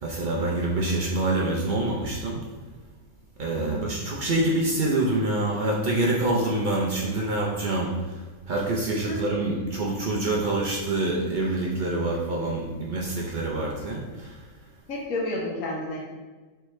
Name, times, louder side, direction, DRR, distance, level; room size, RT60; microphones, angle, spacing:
voice 1, 0.0-2.4 3.4-7.9 8.5-14.4, right 2 dB, 75° right, -3 dB, 0.4 m, -26 dB
voice 2, 3.6-3.9 9.1-9.2 14.9-16.0, left 2 dB, 75° left, -3 dB, 1.1 m, -30 dB
4.4 x 3.3 x 3.1 m, 1.3 s
omnidirectional pair, 1.5 m